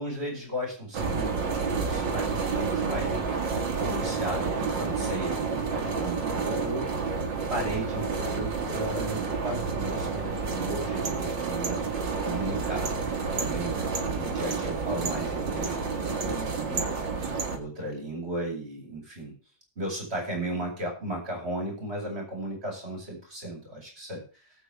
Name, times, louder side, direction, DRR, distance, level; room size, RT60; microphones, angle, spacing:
voice 1, 0.0-3.2 3.5-6.9 7.5-12.9 13.3-19.4 19.8-24.2, right 1 dB, 35° right, 0 dB, 5.8 m, -35 dB
sound 1, 0.9-17.6, right 4 dB, 90° right, 2.5 m, -30 dB
19.0 x 8.3 x 3.5 m, 0.36 s
omnidirectional pair, 1.9 m